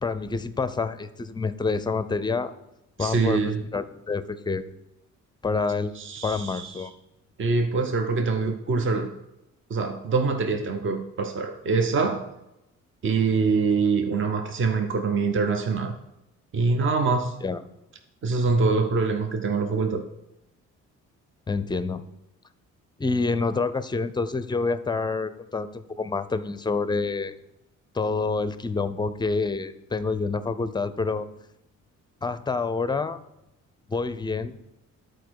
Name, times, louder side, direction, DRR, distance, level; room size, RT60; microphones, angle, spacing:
voice 1, 0.0-2.5 3.0-3.4 3.7-4.6 5.4-6.0 6.2-6.9 17.4-17.6 21.5-22.0 23.0-27.3 27.9-31.3 32.2-33.2 33.9-34.5, left 4 dB, 15° left, 13 dB, 0.5 m, -27 dB
voice 2, 3.0-3.6 6.0-6.9 7.4-9.1 9.7-12.3 13.0-16.0 16.5-17.4 18.2-20.0, right 4 dB, 40° right, 5 dB, 0.8 m, -24 dB
10.5 x 4.5 x 4.7 m, 0.90 s
cardioid pair, 90°, 30 cm